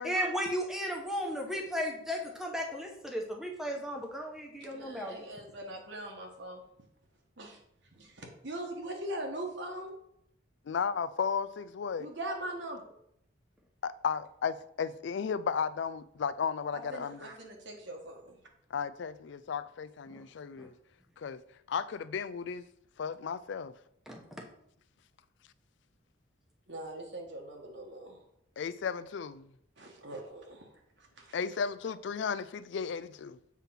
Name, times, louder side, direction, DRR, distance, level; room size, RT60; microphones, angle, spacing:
voice 1, 0.0-5.3 20.1-20.2 20.6-20.7 24.1-24.4, equal, ahead, 1.0 m, -35 dB
voice 2, 4.7-6.6 7.4-7.6 8.0-9.9 12.0-12.9 16.7-18.4 26.7-28.2 29.8-30.7 31.2-31.3, right 1 dB, 55° right, 1.2 m, -41 dB
voice 3, 10.7-12.1 13.8-17.3 18.7-20.7 21.2-21.4 21.7-22.7 23.0-23.7 28.6-29.5 31.3-33.4, left 6 dB, 60° left, 0.3 m, -34 dB
7.3 x 3.6 x 5.6 m
head